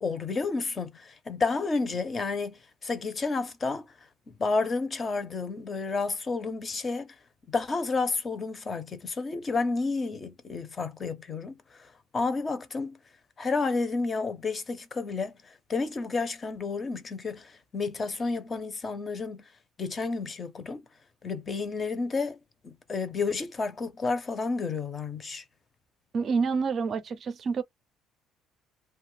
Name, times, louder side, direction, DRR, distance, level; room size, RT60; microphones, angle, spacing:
voice 1, 0.0-3.8 4.3-7.1 7.5-11.6 12.1-13.0 13.4-15.4 15.7-19.5 19.8-20.8 21.2-22.4 22.6-25.4, left 4 dB, 25° left, 0.6 m, -31 dB
voice 2, 26.1-27.6, right 5 dB, 40° right, 0.5 m, -28 dB
2.6 x 2.3 x 3.1 m
cardioid pair, 145°, 0 cm